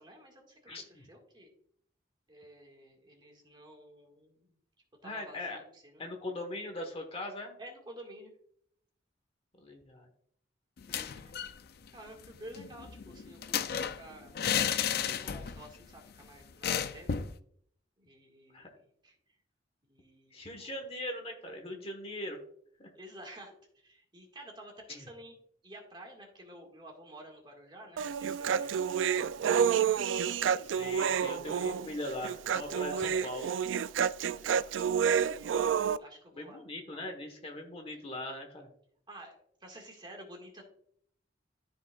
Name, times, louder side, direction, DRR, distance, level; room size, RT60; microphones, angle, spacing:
voice 1, 0.0-1.5 2.3-4.6 5.0-6.0 7.6-8.3 10.9-11.5 11.9-14.4 15.0-17.1 18.0-19.4 19.8-20.9 22.9-25.3 25.6-29.8 30.7-31.7 32.1-32.2 32.7-33.3 34.3-35.7 36.0-36.6 36.9-37.1 39.1-40.6, right 1 dB, 25° right, 1 dB, 1.9 m, -51 dB
voice 2, 0.7-1.0 5.0-5.6 6.0-7.5 9.6-10.1 18.5-18.7 20.3-22.4 22.8-22.9 24.9-25.0 30.6-33.5 36.4-38.7, left 1 dB, 30° left, 4 dB, 1.3 m, -40 dB
sound 1, 10.8-11.6 11.9-12.0 12.2-15.7 16.0-16.1 16.6-17.4, left 8 dB, 55° left, 0.5 m, -33 dB
Human voice, 28.0-36.0, right 7 dB, 90° right, 0.3 m, -29 dB
13.5 x 5.2 x 2.4 m, 0.65 s
head